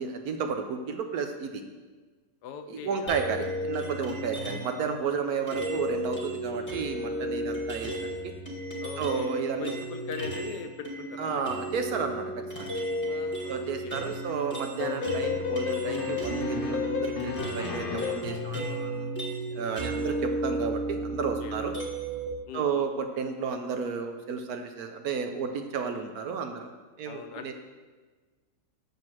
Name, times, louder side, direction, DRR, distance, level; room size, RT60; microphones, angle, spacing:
voice 1, 0.0-1.6 2.7-8.3 9.0-9.7 11.2-12.8 13.5-19.1 19.5-21.7 22.5-26.7 27.0-27.5, right 6 dB, 70° right, 6 dB, 1.0 m, -32 dB
voice 2, 2.4-3.2 6.5-7.0 8.8-11.5 13.1-14.3 20.0-20.4 21.4-21.6 22.5-22.8 25.9-26.1 27.0-27.5, left 6 dB, 75° left, 7 dB, 1.2 m, -41 dB
sound 1, 3.1-4.8 5.5-10.5 10.8-22.3, right 1 dB, 10° left, 1.1 m, -34 dB
sound 2, 14.8-18.4, left 7 dB, 60° left, 0.5 m, -32 dB
7.2 x 5.3 x 6.0 m, 1.4 s
omnidirectional pair, 1.8 m